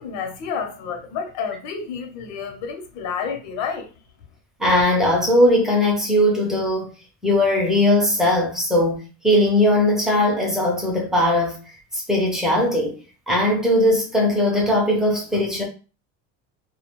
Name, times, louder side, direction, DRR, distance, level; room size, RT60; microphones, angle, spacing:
voice 1, 0.0-3.9, left 6 dB, 75° left, 0.8 m, -30 dB
voice 2, 4.6-6.9 7.2-11.6 11.9-13.0 13.3-15.6, left 1 dB, ahead, 0.6 m, -19 dB
2.4 x 2.2 x 2.9 m
cardioid pair, 160°, 31 cm